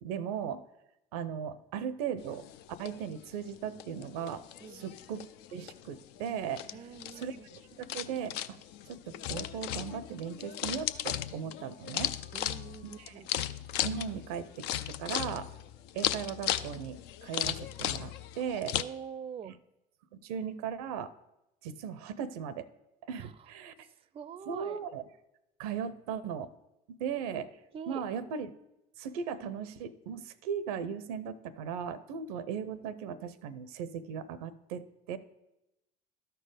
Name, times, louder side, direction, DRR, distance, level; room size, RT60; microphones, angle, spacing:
voice 1, 0.0-0.6 1.1-2.5 2.8-4.4 4.7-6.8 7.2-8.6 8.9-12.1 13.0-13.1 13.8-15.5 15.9-18.8 19.4-19.5 20.2-21.1 21.6-22.7 23.0-23.9 24.5-25.0 25.6-26.5 27.0-27.5 27.9-28.5 29.0-35.2, right 7 dB, 80° right, 16 dB, 0.5 m, -37 dB
sound 1, 2.2-18.8, left 12 dB, 65° left, 0.4 m, -37 dB
voice 2, 4.6-5.0 6.7-7.5 12.3-13.3 18.7-19.5 23.2-23.5 23.8-24.8 27.7-28.0, right 7 dB, 30° right, 18 dB, 0.4 m, -45 dB
12.5 x 4.5 x 5.0 m, 0.90 s
hypercardioid pair, 65°, 19 cm